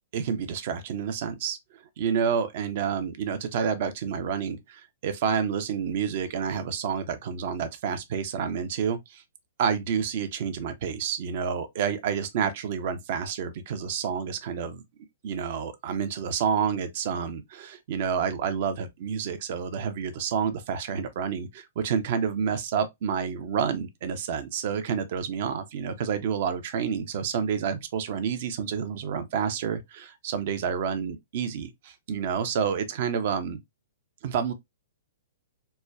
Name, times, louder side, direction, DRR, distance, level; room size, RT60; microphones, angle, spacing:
voice 1, 0.1-1.6 2.0-9.2 9.6-14.8 15.2-33.6 34.2-34.5, right 7 dB, 45° right, 0.6 m, -29 dB
4.2 x 2.2 x 2.3 m
figure-of-eight pair, 115°, 0 cm